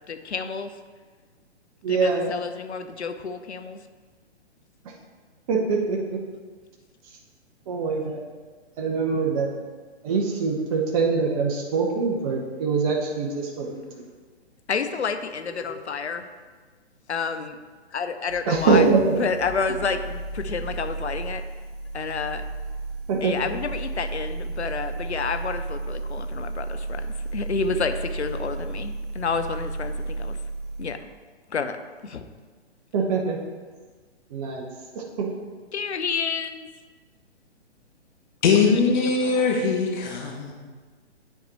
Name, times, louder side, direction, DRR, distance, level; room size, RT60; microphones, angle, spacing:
voice 1, 0.1-0.7 1.9-3.8 14.7-16.3 17.1-17.6 17.9-18.9 19.2-21.4 21.9-22.4 23.2-30.4 30.8-31.1 31.5-31.8 32.0-32.2 35.7-36.7, left 5 dB, 75° left, 9 dB, 0.7 m, -29 dB
voice 2, 1.8-2.3 5.5-6.2 7.7-8.2 8.8-9.5 10.0-14.1 15.5-15.7 18.5-19.2 23.1-23.3 32.9-33.4 34.3-34.7 35.0-35.3, right 4 dB, 30° right, 0 dB, 0.8 m, -24 dB
sound 1, 18.3-31.0, right 2 dB, 50° right, 1.9 m, -33 dB
voice 3, 38.4-40.5, left 5 dB, 45° left, 0 dB, 1.4 m, -21 dB
9.5 x 4.2 x 4.1 m, 1.4 s
figure-of-eight pair, 125°, 34 cm